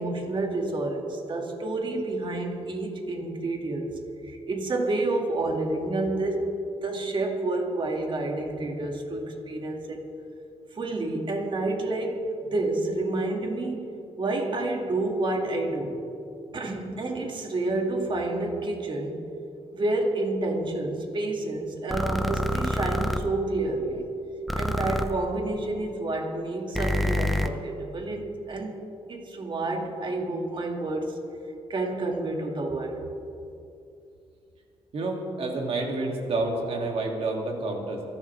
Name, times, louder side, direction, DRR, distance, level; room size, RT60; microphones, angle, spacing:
voice 1, 0.0-6.5 6.8-10.1 10.7-13.9 14.2-16.0 16.5-19.2 19.7-24.1 24.5-28.8 29.1-31.2 31.7-33.1, right 2 dB, 50° right, 1 dB, 2.3 m, -29 dB
sound 1, 21.9-23.2 24.5-25.0 26.7-27.5, left 1 dB, ahead, 1.0 m, -26 dB
voice 2, 34.9-38.0, right 2 dB, 70° right, 0 dB, 2.8 m, -29 dB
28.0 x 12.0 x 3.5 m, 2.6 s
cardioid pair, 80°, 10 cm